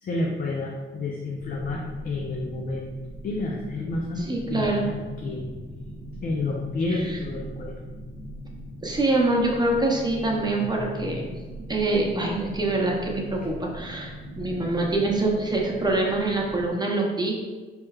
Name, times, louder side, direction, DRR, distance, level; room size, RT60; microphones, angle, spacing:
voice 1, 0.0-2.9 3.2-5.5 5.9-6.0 6.2-7.7, left 2 dB, 50° left, -1 dB, 0.5 m, -30 dB
sound 1, 1.4-16.7, equal, 90° right, 0.8 m, -40 dB
voice 2, 4.2-4.8 6.9-7.2 8.8-11.3 11.7-17.4, right 2 dB, 20° right, -1 dB, 0.7 m, -25 dB
4.4 x 3.3 x 2.3 m, 1.3 s
cardioid pair, 90°, 20 cm